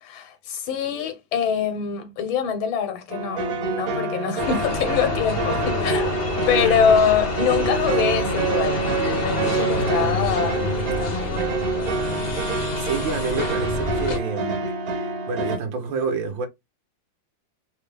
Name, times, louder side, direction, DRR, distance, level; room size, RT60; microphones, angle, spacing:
voice 1, 0.0-8.8 9.2-12.3, left 7 dB, 85° left, 1.7 m, -24 dB
sound 1, 3.1-15.6, right 4 dB, 60° right, 1.1 m, -27 dB
sound 2, 4.4-14.2, left 3 dB, 65° left, 0.5 m, -28 dB
voice 2, 6.3-6.9 9.8-10.2 12.7-16.5, right 5 dB, 80° right, 1.6 m, -29 dB
4.0 x 2.1 x 3.4 m
omnidirectional pair, 2.1 m